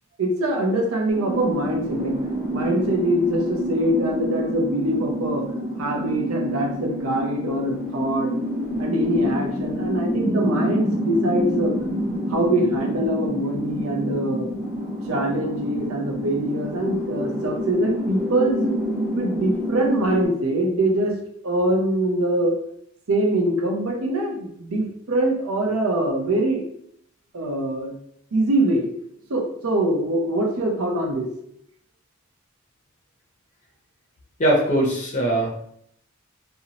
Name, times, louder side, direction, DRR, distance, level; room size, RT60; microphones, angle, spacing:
voice 1, 0.2-2.2 2.5-5.5 5.8-8.3 8.8-11.7 12.3-14.5 15.1-18.8 19.1-21.2 21.4-22.5 23.1-26.6 27.3-27.9 28.3-28.9 29.3-31.3, right 1 dB, 85° right, 2 dB, 0.6 m, -23 dB
sound 1, 1.1-20.2, equal, 10° right, 0.7 m, -27 dB
voice 2, 34.4-35.5, right 1 dB, 35° left, -2 dB, 0.5 m, -20 dB
2.6 x 2.0 x 2.8 m, 0.70 s
head